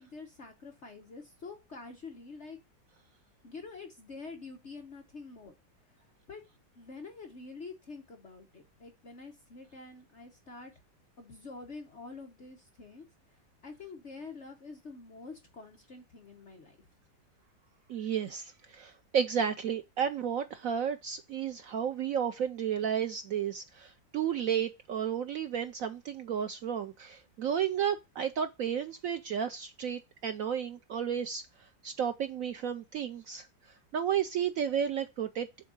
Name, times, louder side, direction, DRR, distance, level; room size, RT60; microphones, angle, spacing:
voice 1, 0.0-2.6 3.4-5.5 6.3-6.4 6.7-10.7 11.2-13.0 13.3-16.8, left 4 dB, 45° left, 1.2 m, -47 dB
voice 2, 17.9-31.4 31.8-33.5 33.9-35.5, right 8 dB, 75° right, 0.7 m, -32 dB
7.3 x 3.6 x 6.3 m
omnidirectional pair, 2.0 m